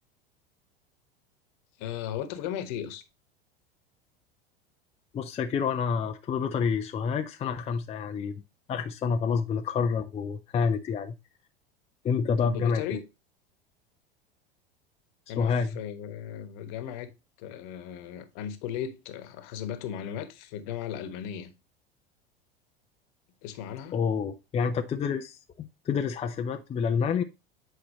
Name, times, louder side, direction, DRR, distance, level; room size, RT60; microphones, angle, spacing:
voice 1, 1.8-3.0 12.4-13.0 15.3-17.1 17.4-21.5 23.4-24.0, left 9 dB, 55° left, 1.2 m, -36 dB
voice 2, 5.1-8.4 8.7-11.1 12.0-13.0 15.3-15.8 23.9-27.2, left 6 dB, 20° left, 0.6 m, -28 dB
8.4 x 4.5 x 3.0 m
figure-of-eight pair, 80°, 29 cm